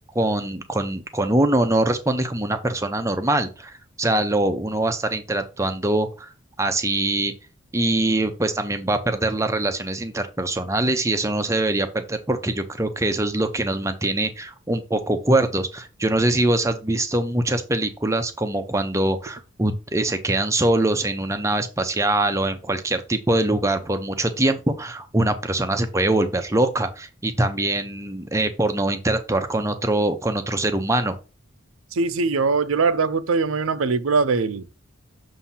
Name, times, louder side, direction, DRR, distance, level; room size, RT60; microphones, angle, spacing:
voice 1, 0.1-3.7 4.0-6.3 6.6-7.3 7.7-31.2, right 1 dB, 15° right, 0.6 m, -23 dB
voice 2, 31.9-34.7, right 4 dB, 80° right, 0.6 m, -21 dB
7.1 x 2.7 x 5.5 m
head